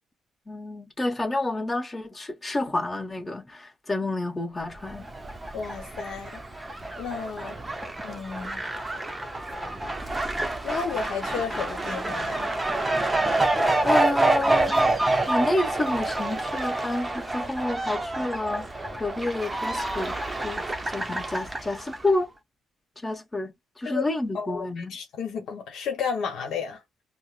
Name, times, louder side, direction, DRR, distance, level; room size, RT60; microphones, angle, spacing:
voice 1, 0.5-5.1 13.8-20.2 20.4-22.3 23.0-25.0, left 2 dB, 20° left, 1.2 m, -29 dB
Fowl, 4.8-22.1, right 2 dB, 15° right, 0.7 m, -28 dB
voice 2, 5.5-6.4 7.0-7.6 8.0-8.6 10.6-12.5 23.8-24.0 24.3-26.8, left 6 dB, 75° left, 0.9 m, -32 dB
4.7 x 2.1 x 2.4 m
cardioid pair, 90°, 0 cm